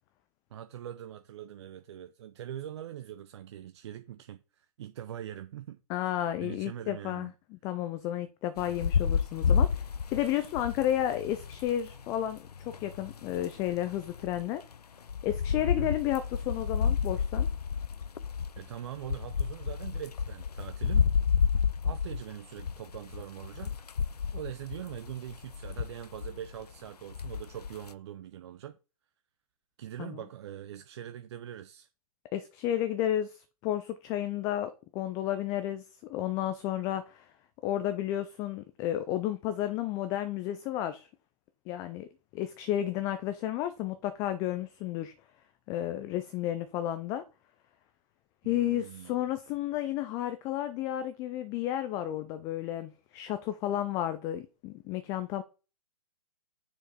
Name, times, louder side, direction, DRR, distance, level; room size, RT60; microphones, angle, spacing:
voice 1, 0.5-6.1 6.4-7.3 15.6-15.9 18.6-21.1 21.8-23.7 24.3-28.8 29.8-31.9 48.4-49.2, right 11 dB, 45° right, 0.5 m, -42 dB
voice 2, 5.9-7.3 7.6-14.6 15.2-17.5 30.0-30.2 32.3-37.3 37.6-41.1 41.7-45.1 45.7-47.2 48.4-55.4, left 12 dB, 15° left, 0.3 m, -32 dB
sound 1, 8.6-14.4 14.7-14.8 15.1-26.7 27.1-27.9, left 6 dB, 80° left, 0.5 m, -30 dB
6.4 x 4.4 x 4.3 m
figure-of-eight pair, 125°, 20 cm